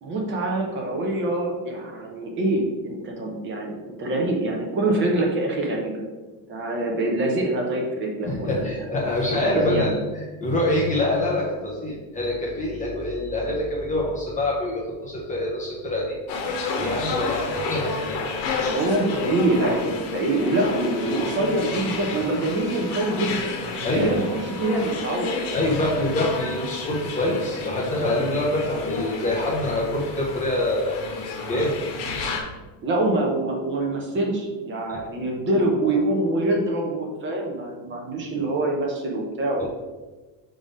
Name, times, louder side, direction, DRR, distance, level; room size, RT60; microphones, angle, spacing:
voice 1, 0.0-5.9 6.5-8.6 9.3-10.0 18.4-23.5 23.9-25.4 32.8-39.7, right 2 dB, 25° right, 1 dB, 0.7 m, -25 dB
voice 2, 8.3-16.2 16.8-18.2 23.8-24.1 25.5-31.0 31.5-31.8 34.9-35.0 39.6-39.7, left 1 dB, 15° left, -4 dB, 0.6 m, -25 dB
sound 1, 16.3-32.4, left 3 dB, 65° left, 1.3 m, -31 dB
5.4 x 4.0 x 4.9 m, 1.2 s
cardioid pair, 180°, 47 cm